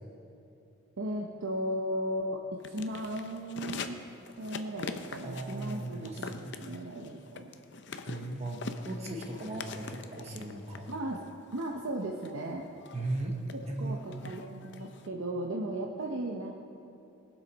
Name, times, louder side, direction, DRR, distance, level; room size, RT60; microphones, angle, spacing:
voice 1, 1.0-4.0 4.4-7.5 10.9-11.2 11.5-12.7 13.5-16.5, right 1 dB, 75° right, 0 dB, 0.8 m, -36 dB
sound 1, 2.6-15.1, left 4 dB, 55° left, 0.6 m, -44 dB
voice 2, 5.2-6.6 8.1-10.9 12.9-13.4 13.7-14.1, right 2 dB, 30° right, 0 dB, 1.0 m, -37 dB
21.0 x 7.2 x 4.1 m, 2.9 s
head